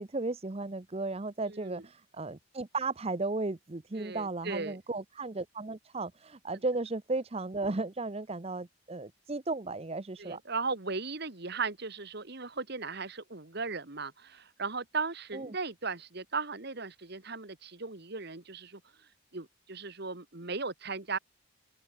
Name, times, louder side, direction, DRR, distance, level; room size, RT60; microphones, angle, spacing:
voice 1, 0.0-10.4 15.3-15.5, right 3 dB, 30° right, 0.7 m, -35 dB
voice 2, 1.5-1.8 3.9-4.8 10.2-18.8 19.3-21.2, right 4 dB, 50° right, 1.6 m, -37 dB
open air
head